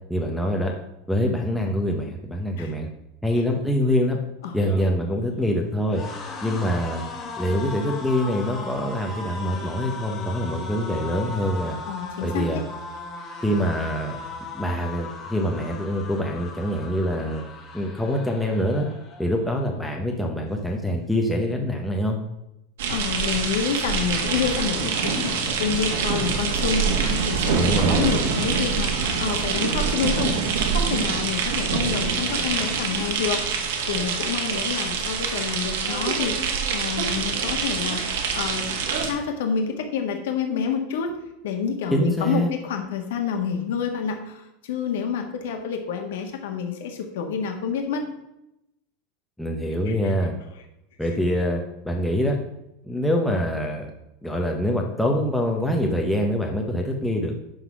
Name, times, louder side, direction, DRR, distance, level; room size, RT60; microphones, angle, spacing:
voice 1, 0.1-0.7 1.1-2.9 3.2-4.2 4.5-6.0 6.4-7.0 7.4-11.8 12.2-12.6 13.4-14.2 14.5-17.4 17.7-18.9 19.2-22.2 27.5-28.2 41.9-42.5 49.4-50.3 51.0-52.4 52.8-53.9 54.2-57.3, equal, ahead, 0 dB, 0.7 m, -25 dB
sound 1, 4.4-19.6 20.0-20.2 20.5-21.3, left 3 dB, 20° left, 1.4 m, -38 dB
voice 2, 11.9-12.6 22.9-30.4 30.7-36.4 36.7-38.0 38.3-38.7 39.0-41.1 41.4-48.0 49.9-50.0, left 6 dB, 80° left, 4 dB, 1.6 m, -28 dB
sound 2, 22.8-39.1, right 5 dB, 85° right, 1.7 m, -25 dB
11.0 x 4.0 x 6.0 m, 0.86 s
supercardioid pair, 170°, 0 cm